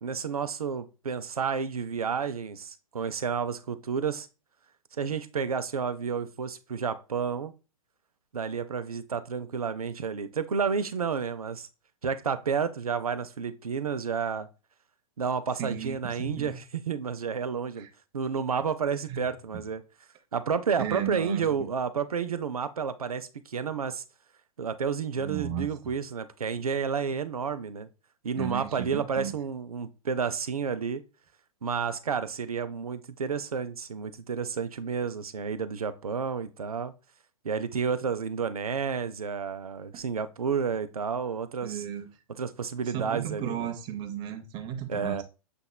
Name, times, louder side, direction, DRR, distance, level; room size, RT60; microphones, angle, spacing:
voice 1, 0.0-4.3 5.0-7.5 8.3-11.7 12.0-14.5 15.2-17.9 18.1-19.8 20.3-24.0 24.6-27.9 28.2-31.0 31.6-36.9 37.4-41.8 42.4-43.7 44.9-45.2, right 6 dB, 75° right, 0.5 m, -31 dB
voice 2, 15.6-16.6 17.8-17.9 19.1-19.2 19.5-19.6 20.8-21.7 25.2-25.7 28.3-29.3 41.6-42.1 42.9-45.2, right 9 dB, 25° right, 0.7 m, -34 dB
6.8 x 2.9 x 2.2 m
figure-of-eight pair, 110°, 19 cm